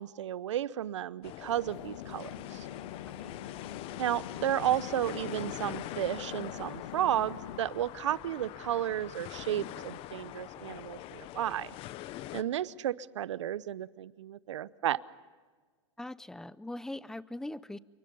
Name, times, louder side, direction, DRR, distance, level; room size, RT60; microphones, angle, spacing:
voice 1, 0.0-2.7 4.0-11.7 12.3-15.0, right 11 dB, 85° right, 19 dB, 0.8 m, -33 dB
sound 1, 1.2-12.4, left 14 dB, 40° left, 1.0 m, -43 dB
sound 2, 1.7-7.6, left 9 dB, 80° left, 1.4 m, -44 dB
voice 2, 16.0-17.8, left 1 dB, 5° left, 19 dB, 0.6 m, -41 dB
28.0 x 23.5 x 5.5 m, 1.5 s
hypercardioid pair, 125°, 15 cm